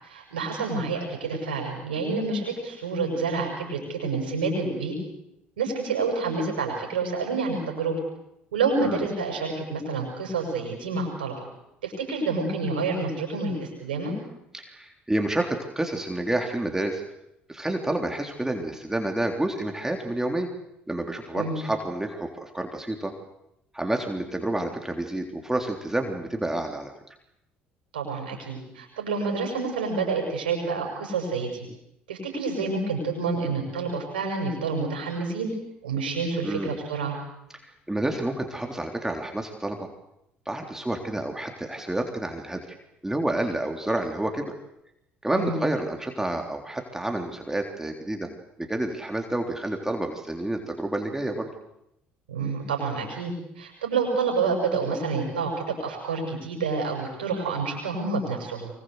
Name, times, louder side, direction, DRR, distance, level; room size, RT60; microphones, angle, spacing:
voice 1, 0.0-4.9 5.6-8.0 8.5-11.3 11.8-14.1 21.3-21.6 27.9-31.7 32.1-35.5 35.8-37.2 45.3-45.6 52.3-58.7, right 4 dB, 90° right, 1 dB, 6.7 m, -28 dB
voice 2, 14.5-17.0 17.5-20.5 20.9-23.1 23.7-26.9 36.4-36.7 37.5-39.9 40.5-42.8 43.0-44.6 45.2-48.3 48.6-51.5, right 1 dB, 10° right, 3 dB, 3.6 m, -29 dB
24.5 x 23.5 x 8.1 m, 0.81 s
hypercardioid pair, 60°, 5 cm